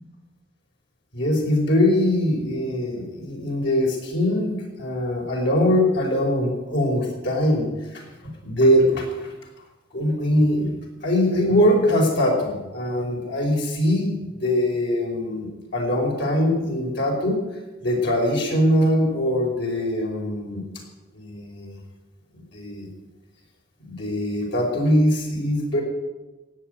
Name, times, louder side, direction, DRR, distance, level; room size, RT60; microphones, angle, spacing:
voice 1, 1.1-7.7 7.9-8.0 8.4-9.0 9.9-17.4 17.8-20.6 21.1-21.7 22.5-22.9 23.9-25.8, left 1 dB, 60° left, -1 dB, 5.3 m, -22 dB
17.0 x 8.5 x 9.5 m, 1.1 s
head